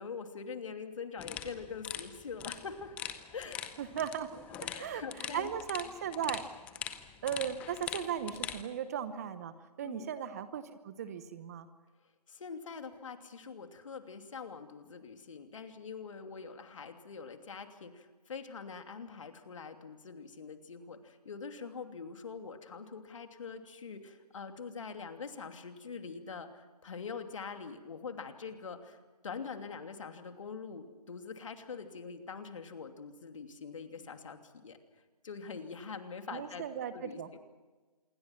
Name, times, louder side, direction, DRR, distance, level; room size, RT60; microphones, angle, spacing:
voice 1, 0.0-3.0 3.3-3.6 4.7-5.5 9.8-10.1 12.3-29.0 29.2-34.8 35.2-36.6 36.9-37.4, left 5 dB, 50° left, 6 dB, 2.9 m, -44 dB
sound 1, 1.2-8.6, left 10 dB, 5° left, 0.6 m, -43 dB
voice 2, 3.8-4.3 4.8-6.4 7.2-11.7 36.3-37.3, right 9 dB, 25° right, 13 dB, 1.0 m, -37 dB
27.0 x 22.5 x 6.0 m, 1.3 s
figure-of-eight pair, 155°, 20 cm